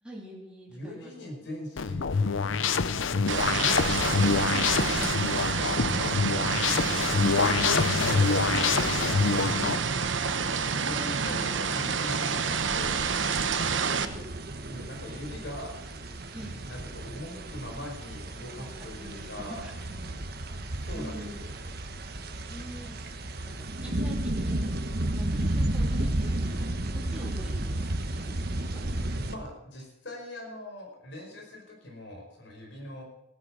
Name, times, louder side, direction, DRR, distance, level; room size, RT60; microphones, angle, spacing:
voice 1, 0.0-1.5 10.2-11.4 13.7-14.3 16.3-16.6 18.6-20.5 20.9-21.5 22.4-28.8, equal, 5° right, -4 dB, 3.3 m, -45 dB
voice 2, 0.7-4.4 5.8-6.3 7.8-9.1 10.9-13.1 14.7-15.8 16.5-19.7 20.7-21.5 29.3-33.0, left 1 dB, 65° left, 0 dB, 5.1 m, -42 dB
sound 1, 1.8-9.8, left 5 dB, 80° left, 0.7 m, -26 dB
sound 2, 3.3-14.1, right 5 dB, 70° right, 1.0 m, -28 dB
sound 3, 14.1-29.4, right 1 dB, 50° right, 1.2 m, -32 dB
16.0 x 9.9 x 6.3 m, 0.88 s
head